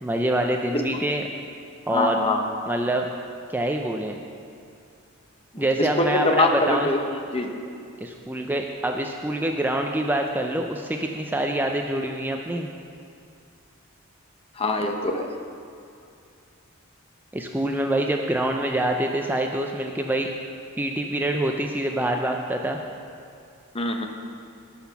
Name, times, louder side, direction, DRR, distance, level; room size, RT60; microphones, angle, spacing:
voice 1, 0.0-1.2 1.9-2.2 2.7-3.1 3.5-4.2 5.6-6.9 8.0-12.7 17.3-20.3 20.8-22.8, right 1 dB, 10° right, 2 dB, 0.4 m, -25 dB
voice 2, 1.9-2.4 5.5-7.0 7.3-7.6 14.6-15.3 23.7-24.1, left 2 dB, 25° left, 4 dB, 0.8 m, -23 dB
14.0 x 6.0 x 5.8 m, 2.4 s
head